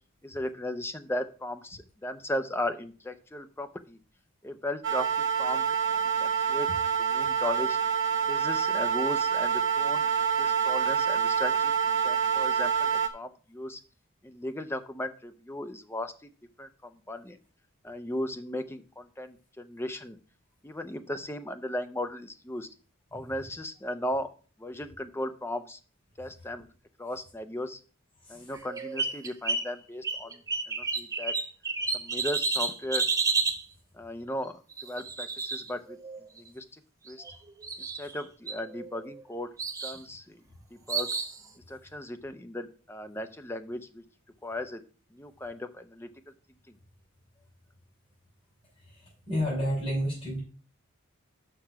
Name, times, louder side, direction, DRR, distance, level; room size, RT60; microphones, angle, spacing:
voice 1, 0.2-4.0 4.4-5.7 5.9-6.7 7.0-7.8 8.3-10.1 10.4-13.8 14.2-16.3 16.6-17.4 17.8-20.2 20.6-22.7 23.1-24.3 24.6-25.8 26.2-26.7 27.0-27.8 28.3-30.4 30.7-31.4 31.9-33.0 33.9-36.0 36.4-36.8 37.1-37.2 37.8-39.5 39.8-40.4 40.7-41.1 41.7-44.0 44.4-44.8 45.1-46.1 46.7-46.8, left 1 dB, 10° left, 8 dB, 0.6 m, -36 dB
sound 1, 4.8-13.1, right 7 dB, 55° right, 1.3 m, -27 dB
sound 2, 28.5-29.7 30.0-33.6 34.7-36.2 37.1-37.3 37.6-38.2 38.5-39.2 39.6-40.0 40.9-41.4, right 4 dB, 15° right, 0.9 m, -31 dB
voice 2, 49.3-50.4, equal, 25° left, -6 dB, 4.9 m, -29 dB
6.8 x 5.9 x 5.9 m, 0.38 s
head